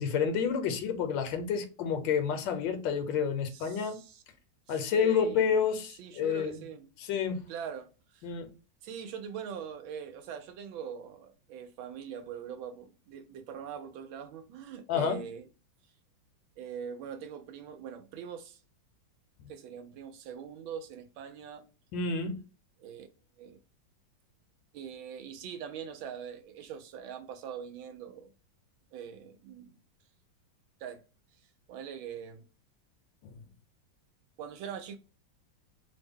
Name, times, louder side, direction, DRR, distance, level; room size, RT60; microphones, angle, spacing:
voice 1, 0.0-4.0 4.7-6.6 7.0-7.5 8.2-8.5 14.9-15.2 21.9-22.4 33.2-33.3, left 6 dB, 75° left, 1.2 m, -29 dB
voice 2, 3.5-4.2 4.7-5.5 6.0-6.9 7.5-8.3 8.8-15.5 16.6-18.6 19.5-21.6 22.8-23.1 23.4-23.6 24.7-28.3 28.9-29.7 30.8-31.0 31.7-32.4 34.4-35.0, right 8 dB, 85° right, 1.4 m, -42 dB
3.3 x 2.1 x 3.5 m
omnidirectional pair, 2.1 m